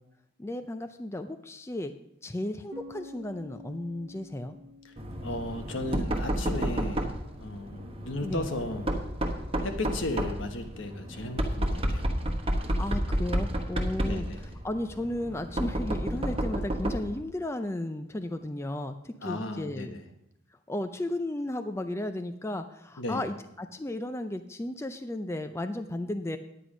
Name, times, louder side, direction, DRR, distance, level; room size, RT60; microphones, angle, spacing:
voice 1, 0.4-1.9 2.2-4.5 8.2-8.5 12.8-14.3 14.6-19.9 20.7-26.4, left 1 dB, 15° left, 8 dB, 0.4 m, -34 dB
Bass guitar, 2.7-6.5, left 2 dB, 80° right, 1.0 m, -49 dB
Knock, 5.0-17.2, right 1 dB, 30° right, 1.1 m, -31 dB
voice 2, 5.2-7.1 7.4-8.9 9.6-12.1 14.1-14.5 19.2-20.1 23.0-23.3, left 2 dB, 75° left, 6 dB, 1.2 m, -35 dB
10.0 x 9.6 x 5.0 m, 0.83 s
head